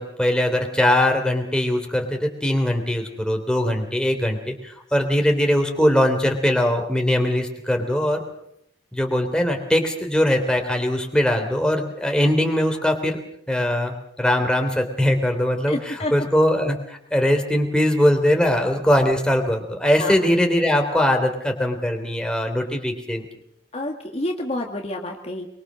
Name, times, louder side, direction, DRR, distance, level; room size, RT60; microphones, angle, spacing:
voice 1, 0.0-8.2 8.9-13.2 13.5-23.3, left 1 dB, 5° left, 3 dB, 3.2 m, -21 dB
voice 2, 15.7-16.1 20.0-20.1 23.7-25.5, left 1 dB, 35° left, 2 dB, 2.0 m, -28 dB
23.5 x 23.5 x 6.3 m, 0.72 s
head